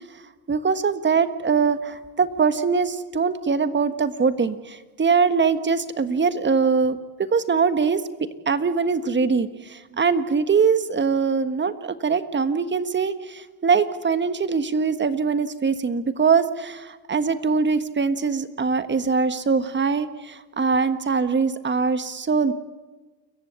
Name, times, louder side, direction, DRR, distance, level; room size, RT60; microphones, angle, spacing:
voice 1, 0.5-8.0 8.5-22.5, right 5 dB, 25° right, 11 dB, 1.4 m, -22 dB
29.0 x 15.0 x 8.3 m, 1.3 s
supercardioid pair, 95°, 43 cm